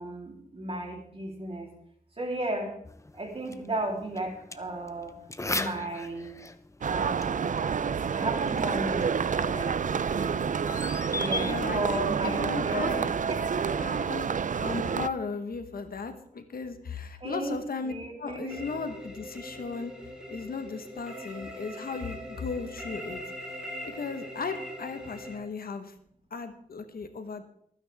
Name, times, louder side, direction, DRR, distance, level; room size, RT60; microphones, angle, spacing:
voice 1, 0.0-1.7 2.2-2.8 3.1-5.1 5.5-6.3 6.8-7.6 8.1-10.4 11.1-13.8 17.2-18.6, right 2 dB, 40° right, 0 dB, 3.6 m, -34 dB
sound 1, 2.8-13.9, left 2 dB, 20° left, 0.8 m, -40 dB
sound 2, 6.8-15.1, right 6 dB, 55° right, 0.5 m, -29 dB
voice 2, 11.4-13.1 13.8-14.3 14.6-17.9 18.2-25.9 26.3-27.4, left 4 dB, 75° left, 8 dB, 1.4 m, -36 dB
sound 3, 18.5-25.4, equal, 5° right, 4.5 m, -41 dB
24.5 x 9.8 x 3.6 m, 0.67 s
wide cardioid pair, 90°, 15 cm